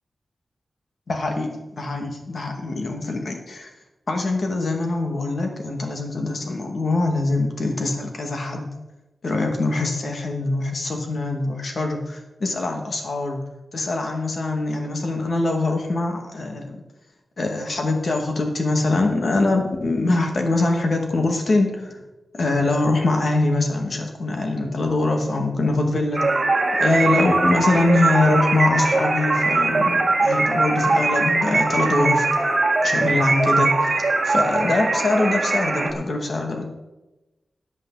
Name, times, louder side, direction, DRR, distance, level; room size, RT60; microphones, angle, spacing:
voice 1, 1.1-3.7 4.1-8.7 9.2-13.4 13.7-16.8 17.4-22.0 22.3-26.2 26.8-32.6 32.8-36.7, left 2 dB, 60° left, 3 dB, 2.2 m, -23 dB
sound 1, 26.1-35.9, right 3 dB, 45° right, 1.7 m, -21 dB
14.0 x 9.0 x 4.1 m, 1.0 s
wide cardioid pair, 115°, 0 cm